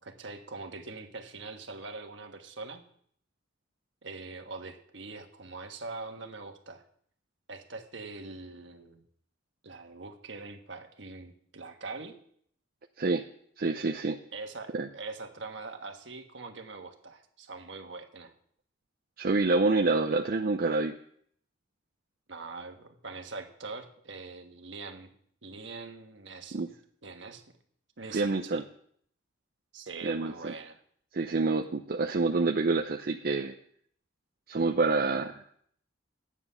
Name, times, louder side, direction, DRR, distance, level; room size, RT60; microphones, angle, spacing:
voice 1, 0.0-2.8 4.0-6.8 7.5-9.1 9.6-12.2 14.3-18.3 22.3-25.1 25.4-26.6 27.0-27.4 28.0-28.6 29.7-30.8, right 3 dB, 70° right, 4 dB, 1.4 m, -43 dB
voice 2, 13.6-14.2 14.7-14.9 19.2-21.0 26.5-26.7 28.1-28.6 30.0-30.5 31.1-33.5 34.5-35.4, right 3 dB, 50° right, 3 dB, 0.6 m, -27 dB
12.0 x 9.1 x 5.6 m, 0.64 s
head